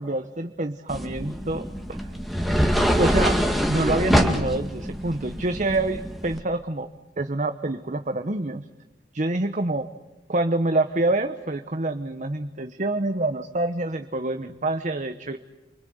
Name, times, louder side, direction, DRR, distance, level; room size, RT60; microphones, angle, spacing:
voice 1, 0.0-2.1 3.0-3.4 3.7-6.9 7.2-8.6 9.1-9.9 10.3-15.4, right 2 dB, 45° right, 8 dB, 1.0 m, -26 dB
sound 1, 0.9-6.4, equal, ahead, 2.1 m, -24 dB
28.5 x 24.5 x 8.0 m, 1.0 s
head